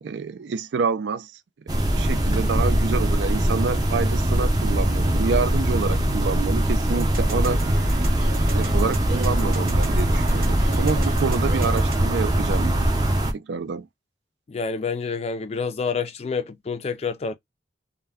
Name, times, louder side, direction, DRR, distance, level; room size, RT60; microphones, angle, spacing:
voice 1, 0.0-1.3 2.0-7.6 8.5-13.0 13.3-13.9, right 5 dB, 80° right, 0.4 m, -28 dB
sound 1, 1.7-13.3, right 1 dB, 20° right, 0.5 m, -22 dB
sound 2, 6.9-12.0, equal, 55° right, 0.7 m, -29 dB
voice 2, 14.5-17.3, left 5 dB, 35° left, 0.3 m, -28 dB
2.2 x 2.2 x 3.4 m
head